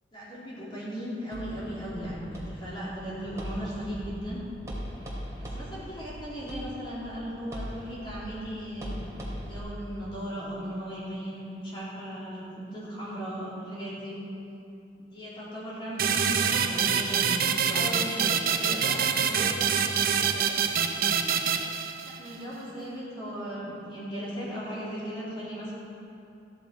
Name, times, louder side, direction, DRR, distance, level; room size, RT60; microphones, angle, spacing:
voice 1, 0.1-4.4 5.4-14.1 15.0-17.9 18.2-19.0 22.1-25.7, equal, 30° left, -9 dB, 3.5 m, -37 dB
sound 1, 1.3-9.6, equal, 15° right, 2.7 m, -40 dB
sound 2, 16.0-22.4, right 7 dB, 55° right, 0.7 m, -26 dB
voice 2, 17.7-20.8, left 1 dB, 15° left, -6 dB, 2.4 m, -39 dB
14.5 x 10.0 x 4.8 m, 2.7 s
head